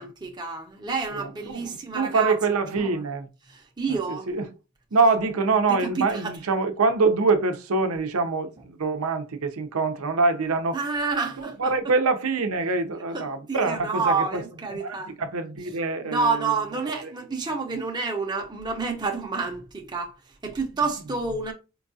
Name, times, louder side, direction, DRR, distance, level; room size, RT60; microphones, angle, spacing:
voice 1, 0.0-2.4 2.8-2.9 3.5-4.3 5.7-6.3 10.7-11.7 13.1-15.1 16.0-20.1 20.4-21.5, right 4 dB, 20° right, 0.6 m, -29 dB
voice 2, 1.1-3.3 3.9-4.5 4.9-10.8 11.4-14.4 14.7-16.5 17.0-17.1, right 3 dB, 90° right, 0.6 m, -25 dB
4.5 x 2.3 x 2.6 m
head